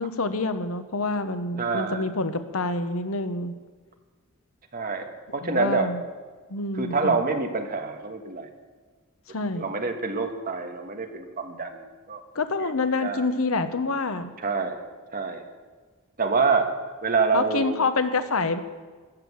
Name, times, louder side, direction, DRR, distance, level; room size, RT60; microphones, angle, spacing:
voice 1, 0.0-3.5 5.4-6.0 6.5-7.2 9.3-9.6 12.3-14.3 17.3-18.6, left 3 dB, 85° left, 10 dB, 1.1 m, -27 dB
voice 2, 1.6-2.0 4.7-5.9 6.7-8.5 9.6-11.8 12.1-12.2 12.6-12.7 13.0-13.3 14.4-14.8 15.1-15.4 16.2-16.7 17.0-17.9, right 4 dB, 45° right, 5 dB, 1.5 m, -26 dB
14.5 x 10.5 x 7.3 m, 1.4 s
head